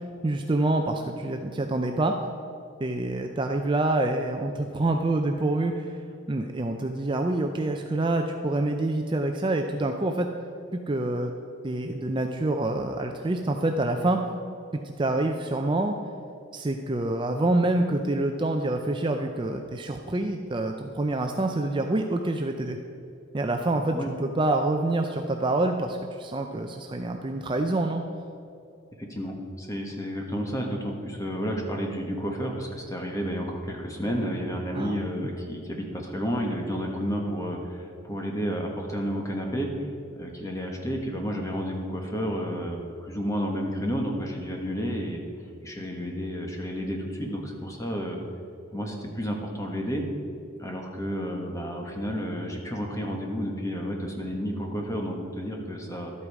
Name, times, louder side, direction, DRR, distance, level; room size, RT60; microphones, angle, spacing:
voice 1, 0.0-2.1 2.8-6.0 6.3-10.3 10.7-11.3 11.6-14.2 15.0-16.0 16.5-22.8 23.3-28.0 34.7-35.3, right 2 dB, 25° right, 4 dB, 0.5 m, -26 dB
voice 2, 29.0-45.2 45.6-48.2 48.7-50.1 50.6-56.1, equal, 15° left, 1 dB, 1.4 m, -31 dB
12.5 x 8.3 x 4.8 m, 2.6 s
head